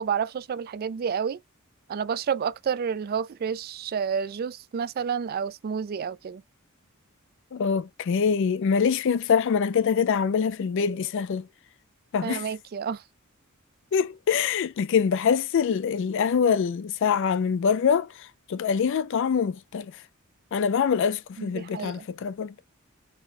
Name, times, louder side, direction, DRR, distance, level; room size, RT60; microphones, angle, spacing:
voice 1, 0.0-1.4 1.9-6.4 12.2-13.0 21.4-22.1, right 7 dB, 45° right, 0.3 m, -30 dB
voice 2, 7.5-11.5 12.1-12.4 13.9-19.9 20.5-22.5, left 6 dB, 60° left, 0.4 m, -24 dB
4.2 x 2.1 x 4.2 m
head